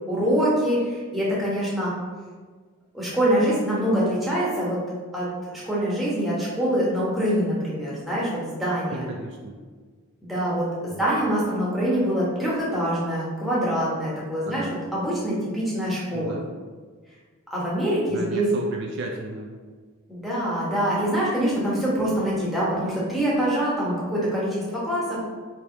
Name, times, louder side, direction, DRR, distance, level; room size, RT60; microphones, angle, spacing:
voice 1, 0.1-1.9 2.9-4.8 5.1-5.3 5.5-9.0 10.2-14.7 14.9-16.3 17.5-18.5 20.1-25.2, equal, ahead, -8 dB, 1.0 m, -24 dB
voice 2, 8.9-9.6 10.9-11.1 14.4-14.8 16.1-16.4 18.1-19.6, right 2 dB, 50° right, 1 dB, 0.3 m, -35 dB
3.4 x 2.9 x 4.5 m, 1.5 s
head